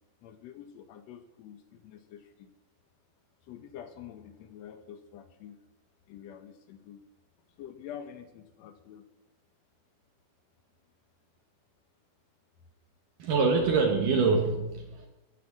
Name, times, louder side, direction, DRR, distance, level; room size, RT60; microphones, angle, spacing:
voice 1, 0.2-2.5 3.4-5.6 6.1-7.0 7.5-9.1, left 9 dB, 85° left, 9 dB, 1.5 m, -47 dB
voice 2, 13.2-15.1, right 4 dB, 65° right, 2 dB, 2.9 m, -25 dB
12.5 x 9.5 x 7.6 m, 1.0 s
omnidirectional pair, 4.2 m